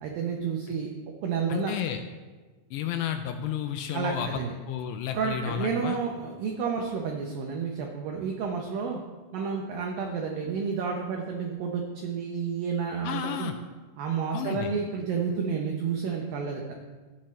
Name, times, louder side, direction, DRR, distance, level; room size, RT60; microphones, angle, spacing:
voice 1, 0.0-1.7 3.9-4.5 5.1-9.0 9.3-13.5 14.0-16.6, right 6 dB, 85° right, 1 dB, 2.0 m, -30 dB
voice 2, 1.5-2.0 2.7-6.0 13.0-13.6 14.3-14.7, left 9 dB, 85° left, 7 dB, 2.5 m, -32 dB
14.0 x 8.7 x 3.2 m, 1.3 s
omnidirectional pair, 5.2 m